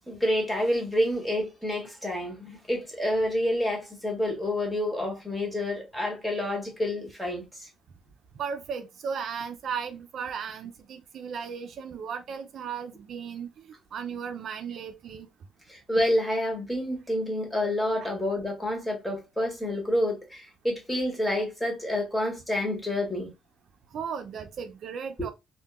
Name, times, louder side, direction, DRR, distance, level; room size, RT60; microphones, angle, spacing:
voice 1, 0.1-7.7 15.7-23.3 25.2-25.3, left 1 dB, 5° left, 1.4 m, -28 dB
voice 2, 8.4-15.3 18.0-18.1 23.9-25.3, right 6 dB, 60° right, 0.4 m, -36 dB
3.5 x 2.2 x 2.3 m
cardioid pair, 95°, 0 cm